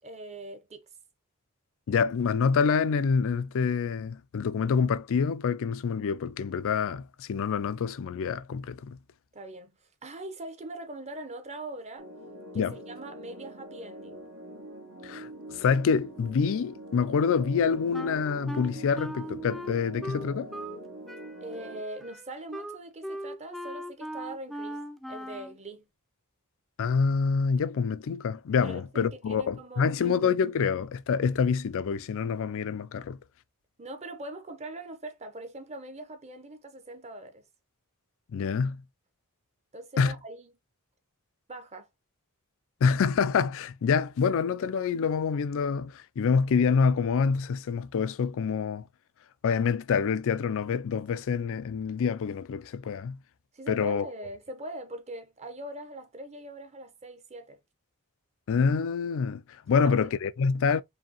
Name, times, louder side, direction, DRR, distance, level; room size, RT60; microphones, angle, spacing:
voice 1, 0.0-0.8 9.3-12.1 12.5-14.3 21.4-24.8 25.1-25.9 28.6-30.3 33.8-37.4 39.7-40.5 41.5-41.9 53.5-57.6 59.8-60.0, right 1 dB, 30° right, 0.8 m, -42 dB
voice 2, 1.9-9.0 12.5-12.8 15.0-20.5 26.8-33.2 38.3-38.8 40.0-40.1 42.8-48.8 49.4-53.2 53.7-54.1 58.5-60.8, left 5 dB, 65° left, 0.4 m, -26 dB
sound 1, 12.0-21.8, right 1 dB, 75° right, 1.4 m, -44 dB
Wind instrument woodwind instrument, 17.9-20.8 21.1-25.6, equal, ahead, 0.4 m, -39 dB
4.9 x 2.7 x 2.9 m
head